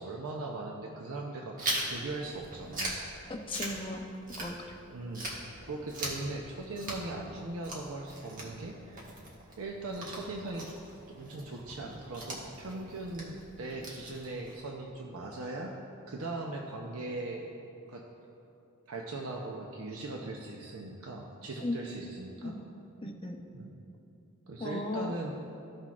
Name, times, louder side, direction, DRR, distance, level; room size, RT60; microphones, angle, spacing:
voice 1, 0.0-3.0 4.8-5.3 5.7-9.1 9.6-10.7 11.1-15.8 16.1-17.6 17.9-18.0 18.9-22.6 23.5-23.7 24.5-25.4, right 2 dB, 70° right, 0 dB, 0.6 m, -39 dB
Chewing mastication, 1.6-4.8 5.1-14.6, right 1 dB, 40° right, 1.4 m, -40 dB
voice 2, 3.3-4.0 4.4-4.6 21.6-21.8 22.4-22.6 23.0-23.4 24.6-25.1, left 2 dB, 25° left, 1 dB, 0.6 m, -36 dB
15.0 x 5.9 x 2.4 m, 2.8 s
head